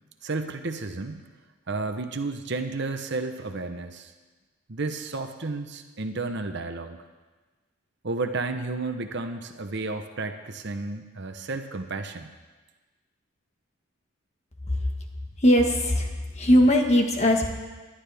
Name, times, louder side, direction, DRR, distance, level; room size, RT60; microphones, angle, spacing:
voice 1, 0.2-1.2 1.7-4.1 4.7-7.0 8.0-12.3, right 3 dB, 60° right, 7 dB, 0.9 m, -32 dB
voice 2, 15.4-16.1 16.3-17.5, equal, 35° left, 2 dB, 1.5 m, -19 dB
20.0 x 11.5 x 3.5 m, 1.3 s
head